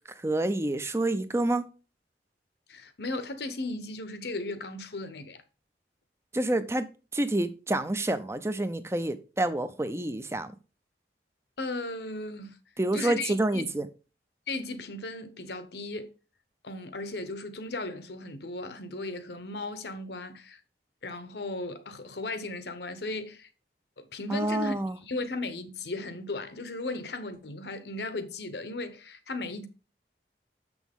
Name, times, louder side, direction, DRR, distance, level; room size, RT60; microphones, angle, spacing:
voice 1, 0.2-1.6 6.3-6.8 7.1-10.5 12.8-13.9 24.3-25.0, right 1 dB, 15° right, 0.5 m, -28 dB
voice 2, 2.7-5.4 11.6-12.6 12.9-13.7 14.5-16.1 16.6-20.6 21.0-23.5 24.0-29.7, left 2 dB, 70° left, 1.0 m, -36 dB
7.0 x 6.2 x 3.6 m
head